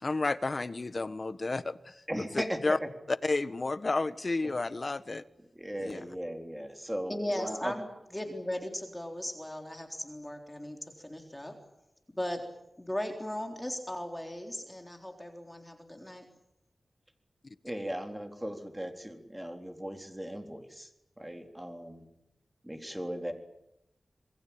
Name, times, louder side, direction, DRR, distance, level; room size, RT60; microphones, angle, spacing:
voice 1, 0.0-2.0 2.6-2.8 3.1-5.2 5.8-6.0, left 3 dB, 40° left, 13 dB, 1.3 m, -31 dB
voice 2, 2.1-2.9 5.6-7.7 17.6-20.9 21.2-22.1 22.6-23.3, equal, 10° right, 5 dB, 3.8 m, -37 dB
voice 3, 7.1-7.9 8.1-11.6 12.1-12.4 12.8-16.3, left 1 dB, 10° left, 3 dB, 3.8 m, -37 dB
27.0 x 21.0 x 8.8 m, 0.86 s
wide cardioid pair, 105°, 0 cm